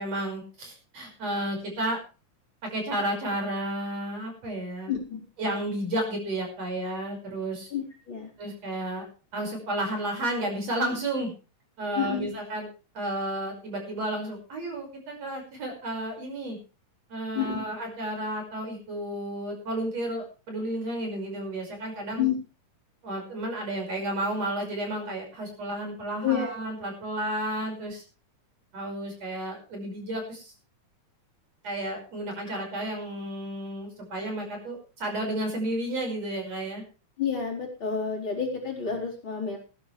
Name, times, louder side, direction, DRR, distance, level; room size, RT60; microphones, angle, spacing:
voice 1, 0.0-2.0 2.7-5.0 5.4-7.7 8.4-9.0 9.3-11.3 11.8-12.7 12.9-16.6 17.1-22.3 23.0-28.0 28.7-30.5 31.6-36.8, right 1 dB, 55° right, 2 dB, 6.7 m, -32 dB
voice 2, 4.9-5.2 7.7-8.3 11.9-12.3 17.3-17.6 22.2-22.4 26.2-26.5 37.2-39.6, left 7 dB, 40° left, -2 dB, 4.9 m, -29 dB
19.5 x 13.0 x 3.3 m, 0.34 s
omnidirectional pair, 3.5 m